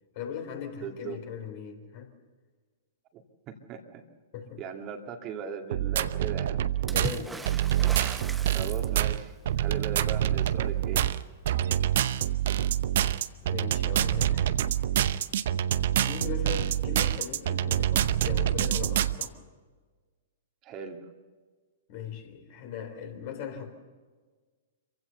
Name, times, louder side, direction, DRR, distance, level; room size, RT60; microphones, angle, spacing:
voice 1, 0.1-2.1 4.3-4.6 6.8-7.4 13.4-14.6 16.0-19.4 21.9-23.8, left 7 dB, 50° left, 5 dB, 3.6 m, -39 dB
voice 2, 0.8-1.2 3.1-4.0 4.6-6.6 8.5-11.2 11.8-12.0 20.6-21.0, right 7 dB, 35° right, 4 dB, 2.3 m, -39 dB
sound 1, 5.7-19.3, right 11 dB, 60° right, 0.7 m, -26 dB
Water / Splash splatter, 6.9-9.3 12.5-12.6 12.9-13.7 14.8-14.9, right 3 dB, 10° right, 1.0 m, -39 dB
26.0 x 16.0 x 6.9 m, 1.4 s
figure-of-eight pair, 110°, 0 cm